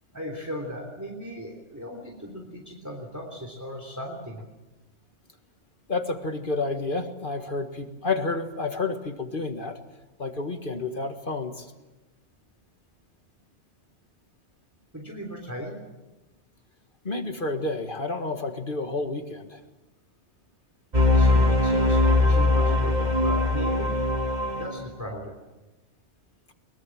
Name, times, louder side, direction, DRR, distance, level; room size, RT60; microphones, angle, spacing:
voice 1, 0.1-4.4 14.9-15.8 21.1-23.9 24.5-25.4, equal, 15° right, 1 dB, 3.4 m, -37 dB
voice 2, 5.9-9.8 10.2-11.7 17.0-19.6, left 3 dB, 45° left, 6 dB, 1.9 m, -30 dB
sound 1, 20.9-24.9, left 2 dB, 35° right, 2.0 m, -21 dB
22.5 x 22.0 x 7.6 m, 1.1 s
omnidirectional pair, 1.2 m